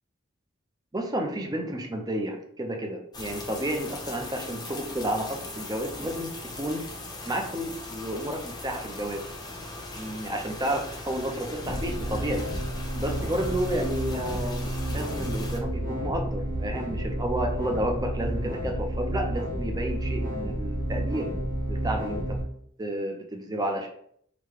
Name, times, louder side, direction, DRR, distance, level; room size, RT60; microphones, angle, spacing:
voice 1, 0.9-6.9 7.2-9.2 9.9-12.4 13.0-21.3 21.7-22.4 22.8-23.9, right 1 dB, 20° right, 3 dB, 0.5 m, -31 dB
sound 1, 3.1-15.6, left 2 dB, 20° left, 0.7 m, -40 dB
sound 2, 11.6-22.4, right 1 dB, 45° right, 1.3 m, -31 dB
4.9 x 2.2 x 3.4 m, 0.67 s
head